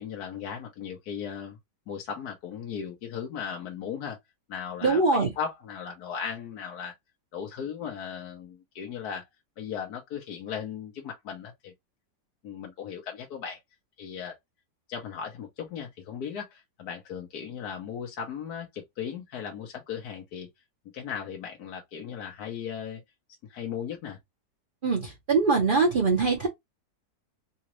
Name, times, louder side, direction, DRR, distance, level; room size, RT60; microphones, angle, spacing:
voice 1, 0.0-1.6 1.9-4.2 4.5-6.9 7.3-9.2 9.6-11.7 12.4-13.6 14.0-14.3 14.9-20.5 20.9-23.0 23.5-24.2, left 7 dB, 65° left, 1.3 m, -37 dB
voice 2, 4.8-5.3 24.8-26.5, right 4 dB, 35° right, 0.9 m, -23 dB
4.0 x 2.4 x 2.9 m
omnidirectional pair, 1.9 m